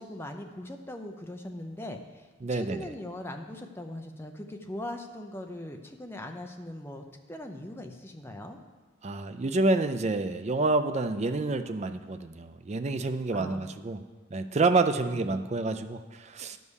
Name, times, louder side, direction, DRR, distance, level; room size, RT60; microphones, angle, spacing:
voice 1, 0.0-8.6 13.3-13.6 15.1-15.4, left 1 dB, 10° left, 4 dB, 0.6 m, -40 dB
voice 2, 2.4-2.9 9.0-14.0 14.3-16.6, right 3 dB, 35° right, 9 dB, 0.4 m, -28 dB
10.5 x 5.4 x 6.4 m, 1.3 s
head